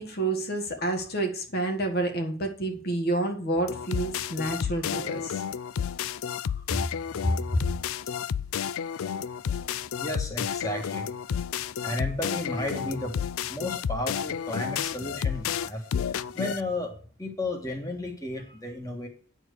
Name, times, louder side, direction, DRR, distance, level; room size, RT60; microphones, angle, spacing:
voice 1, 0.0-5.4 7.2-7.6, right 1 dB, 50° left, 4 dB, 1.7 m, -29 dB
sound 1, 3.7-16.6, left 8 dB, 90° left, 0.4 m, -31 dB
voice 2, 10.0-11.1 11.5-13.2 13.5-19.1, left 1 dB, 15° left, 2 dB, 1.6 m, -33 dB
9.7 x 4.6 x 6.6 m, 0.41 s
head